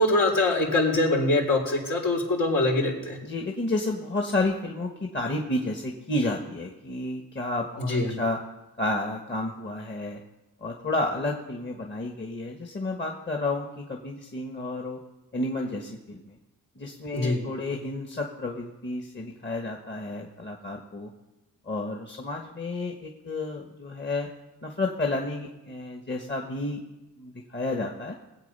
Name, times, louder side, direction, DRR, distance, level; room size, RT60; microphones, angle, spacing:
voice 1, 0.0-3.2 7.8-8.2 17.1-17.4, left 2 dB, 75° left, 0 dB, 3.5 m, -23 dB
voice 2, 3.2-8.4 8.8-10.2 10.6-15.0 15.3-16.4 16.8-21.1 21.6-24.3 24.6-26.8 27.2-28.2, left 2 dB, 35° left, 1 dB, 1.4 m, -31 dB
20.0 x 8.0 x 5.5 m, 1.0 s
cardioid pair, 85°, 33 cm